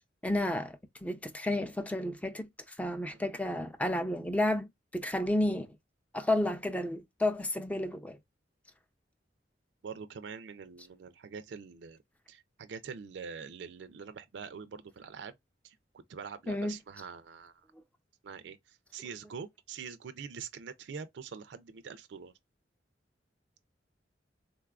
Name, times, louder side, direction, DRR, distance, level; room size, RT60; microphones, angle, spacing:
voice 1, 0.2-2.5 2.8-5.7 6.1-8.2 16.5-16.8, left 1 dB, 10° left, 0.4 m, -31 dB
voice 2, 9.8-12.0 12.3-15.3 15.6-17.5 18.2-22.3, right 6 dB, 70° right, 0.4 m, -44 dB
3.7 x 2.3 x 2.2 m
head